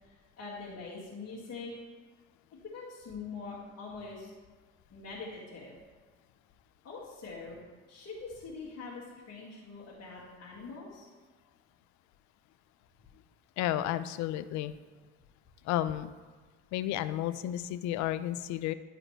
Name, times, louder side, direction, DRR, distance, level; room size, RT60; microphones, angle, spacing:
voice 1, 0.0-1.7 2.6-4.3 4.9-5.8 6.8-7.6 7.9-11.1, left 4 dB, 50° left, -7 dB, 2.0 m, -44 dB
voice 2, 13.6-14.7 15.6-16.1 16.7-18.7, left 13 dB, 65° left, 14 dB, 0.5 m, -32 dB
11.0 x 4.9 x 3.3 m, 1.4 s
supercardioid pair, 75°, 30 cm